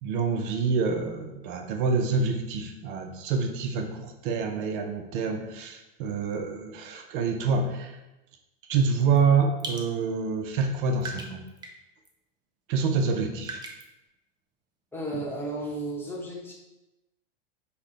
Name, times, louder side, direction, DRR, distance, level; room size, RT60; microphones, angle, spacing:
voice 1, 0.0-8.0 8.7-11.4 12.7-13.6, right 5 dB, 60° right, 4 dB, 0.7 m, -27 dB
sound 1, 9.0-9.2 9.6-9.9 10.6-10.7 11.0-11.8 12.0-12.1 13.4-13.8, right 2 dB, 15° right, 0.5 m, -37 dB
voice 2, 14.9-16.5, right 1 dB, 5° left, -3 dB, 0.9 m, -33 dB
5.5 x 2.2 x 3.8 m, 0.98 s
supercardioid pair, 130°, 29 cm